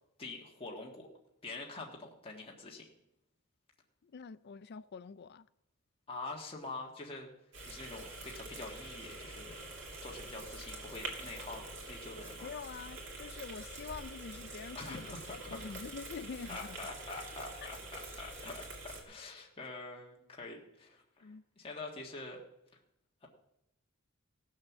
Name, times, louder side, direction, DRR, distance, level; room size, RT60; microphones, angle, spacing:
voice 1, 0.2-1.1 1.4-2.9 6.1-7.3 7.7-9.6 10.0-12.5 14.7-15.6 16.5-22.4 23.2-23.3, left 3 dB, 25° left, 1.5 m, -45 dB
voice 2, 4.0-5.5 12.4-16.8 21.2-21.4, left 5 dB, 50° left, 0.4 m, -46 dB
sound 1, 7.5-19.0, right 2 dB, 60° right, 2.8 m, -46 dB
16.5 x 6.5 x 7.2 m
head